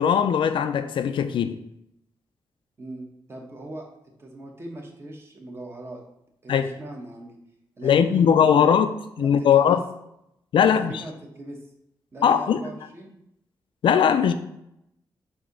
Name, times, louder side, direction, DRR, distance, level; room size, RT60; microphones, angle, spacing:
voice 1, 0.0-1.6 6.5-6.7 7.8-8.9 9.2-9.8 10.5-11.0 12.2-12.6 13.8-14.3, left 8 dB, 85° left, 0.5 m, -19 dB
voice 2, 2.8-3.9 4.2-6.0 6.4-7.4 7.8-8.7 9.2-9.8 10.6-11.6 12.1-13.1, right 1 dB, 30° right, 1.2 m, -39 dB
7.1 x 2.9 x 5.3 m
wide cardioid pair, 145°, 8 cm